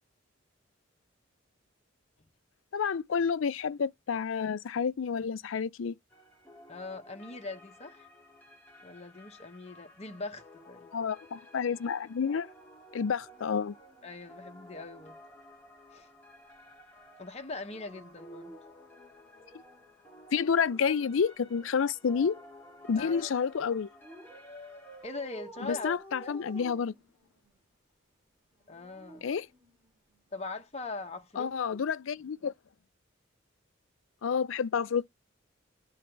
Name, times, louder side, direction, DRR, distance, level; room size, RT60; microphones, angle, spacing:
voice 1, 2.7-6.0 10.9-12.5 12.9-13.7 20.3-22.4 22.9-23.9 25.6-26.9 29.2-29.5 31.4-32.5 34.2-35.1, left 6 dB, 75° left, 0.4 m, -29 dB
sound 1, 6.1-25.0, left 1 dB, 10° left, 2.5 m, -54 dB
voice 2, 6.7-8.1 8.8-10.9 14.0-15.2 15.9-16.1 17.2-18.6 22.9-23.3 25.0-26.4 28.7-29.3 30.3-31.8, left 3 dB, 30° left, 0.8 m, -41 dB
Dog, 13.2-15.1 17.5-19.9 21.2-22.9 24.0-27.6 28.5-30.2 31.4-31.7, right 1 dB, 5° right, 3.4 m, -53 dB
11.5 x 3.9 x 3.3 m
head